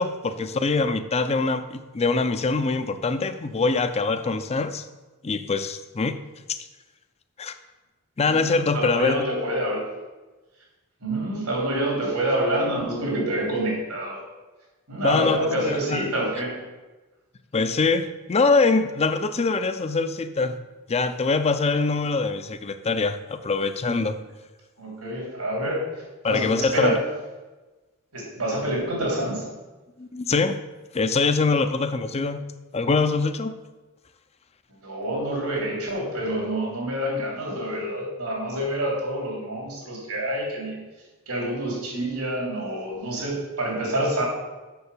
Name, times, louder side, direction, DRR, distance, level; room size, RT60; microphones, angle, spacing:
voice 1, 0.0-4.8 5.2-6.2 7.4-7.6 8.2-9.2 15.0-16.1 17.5-20.6 20.9-24.2 26.2-26.9 30.0-30.6 30.9-32.4 32.7-33.5, left 4 dB, 30° left, 10 dB, 0.5 m, -23 dB
voice 2, 8.2-9.9 11.0-14.2 14.9-16.7 24.0-24.1 24.8-27.0 28.1-29.5 34.8-40.9 41.3-44.2, right 1 dB, 90° right, -2 dB, 3.5 m, -27 dB
7.0 x 6.7 x 6.8 m, 1.2 s
head